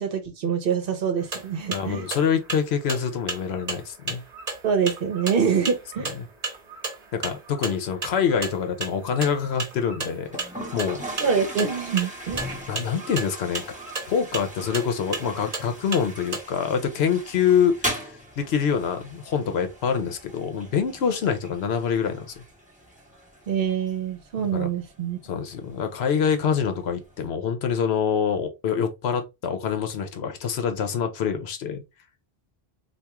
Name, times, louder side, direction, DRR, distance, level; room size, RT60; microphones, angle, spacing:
voice 1, 0.0-2.1 4.6-6.1 11.2-12.5 23.5-25.2, right 7 dB, 60° right, 0.9 m, -25 dB
sound 1, 1.2-16.4, right 3 dB, 40° right, 1.0 m, -34 dB
voice 2, 1.7-4.2 6.2-6.3 7.1-10.3 10.7-11.0 12.7-13.7 14.1-22.4 24.4-24.7 25.3-31.8, left 7 dB, 75° left, 0.9 m, -25 dB
Toilet flush, 10.2-27.3, equal, 10° right, 0.8 m, -39 dB
3.4 x 2.4 x 2.9 m
omnidirectional pair, 1.1 m